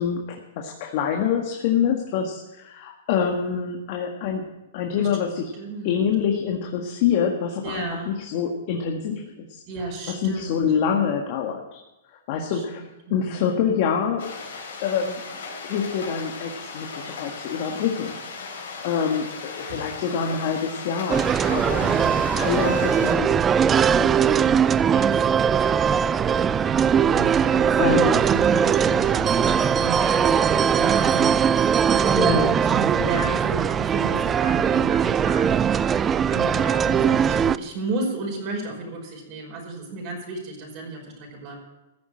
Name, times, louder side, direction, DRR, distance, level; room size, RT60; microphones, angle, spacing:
voice 1, 0.0-4.5 4.7-5.5 5.8-9.6 10.1-11.8 12.3-12.8 13.1-14.3 14.8-15.2 15.6-18.2 18.4-21.9 22.2-23.3 23.8-24.5 27.8-28.2 32.2-32.6, left 7 dB, 50° left, 2 dB, 1.8 m, -26 dB
voice 2, 5.6-6.1 7.6-8.1 9.7-10.6 12.3-13.4 21.8-22.4 24.9-25.9 27.0-41.6, right 3 dB, 45° right, 0 dB, 5.4 m, -34 dB
sound 1, 14.2-23.1, left 4 dB, 75° left, 4.4 m, -37 dB
sound 2, 21.1-37.6, right 7 dB, 20° right, 0.4 m, -20 dB
15.0 x 7.3 x 8.7 m, 1.0 s
hypercardioid pair, 125°, 0 cm